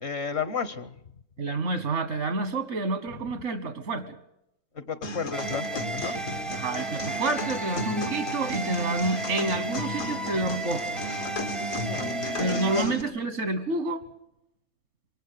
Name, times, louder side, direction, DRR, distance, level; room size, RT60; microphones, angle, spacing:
voice 1, 0.0-0.9 4.8-6.5 11.8-12.9, left 5 dB, 60° left, 14 dB, 1.2 m, -33 dB
voice 2, 1.4-4.2 6.5-11.1 12.4-14.0, right 2 dB, 85° right, 10 dB, 1.6 m, -29 dB
sound 1, 5.0-13.0, left 1 dB, 90° left, 2.3 m, -35 dB
sound 2, 5.3-12.9, right 3 dB, ahead, 0.4 m, -34 dB
24.5 x 19.5 x 6.7 m, 0.82 s
omnidirectional pair, 1.3 m